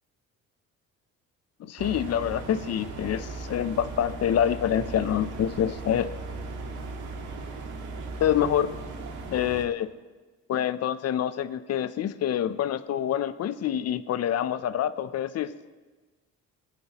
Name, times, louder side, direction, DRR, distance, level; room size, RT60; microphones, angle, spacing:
voice 1, 1.6-6.1 8.2-8.7 9.3-9.9 10.5-15.5, left 10 dB, 55° left, 14 dB, 0.6 m, -26 dB
sound 1, 1.8-9.6, right 3 dB, 80° right, 1.8 m, -37 dB
21.0 x 9.8 x 3.0 m, 1.3 s
cardioid pair, 90°, 30 cm